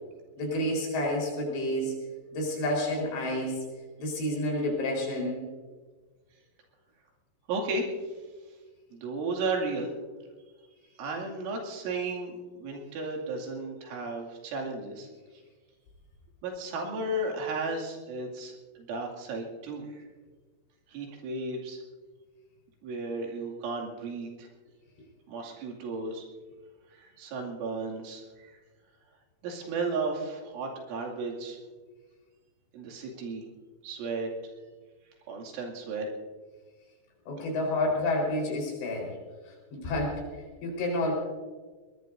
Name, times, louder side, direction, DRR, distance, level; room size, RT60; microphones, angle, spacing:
voice 1, 0.4-2.0 2.3-3.6 4.0-5.4 37.3-39.2 39.7-40.2 40.6-41.1, left 1 dB, 65° left, 0 dB, 6.5 m, -29 dB
voice 2, 7.5-7.9 8.9-9.9 11.0-15.1 16.4-20.1 20.9-21.8 22.8-24.5 25.3-26.2 26.9-28.6 29.4-31.6 32.7-33.5 33.8-34.3 35.3-36.1, right 3 dB, 85° right, 0 dB, 4.9 m, -34 dB
21.0 x 21.0 x 2.7 m, 1.4 s
omnidirectional pair, 5.4 m